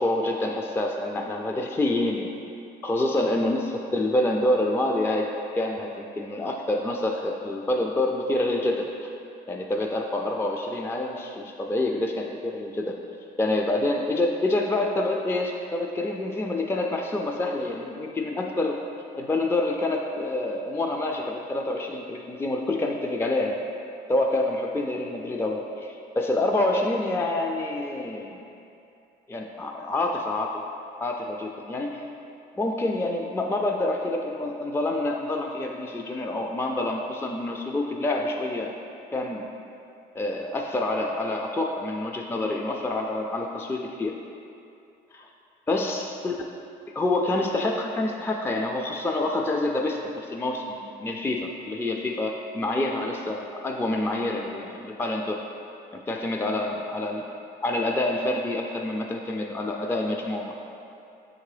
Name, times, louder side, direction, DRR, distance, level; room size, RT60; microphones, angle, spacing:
voice 1, 0.0-2.3 2.8-9.1 9.5-13.0 13.4-18.8 19.2-23.6 24.1-28.4 29.3-30.6 31.0-32.1 32.6-38.8 39.1-39.6 40.1-44.1 45.1-45.3 45.7-46.4 46.9-55.4 56.1-57.3 57.6-60.5, left 2 dB, 15° left, 1 dB, 0.4 m, -27 dB
6.5 x 3.7 x 4.8 m, 2.7 s
cardioid pair, 110°, 17 cm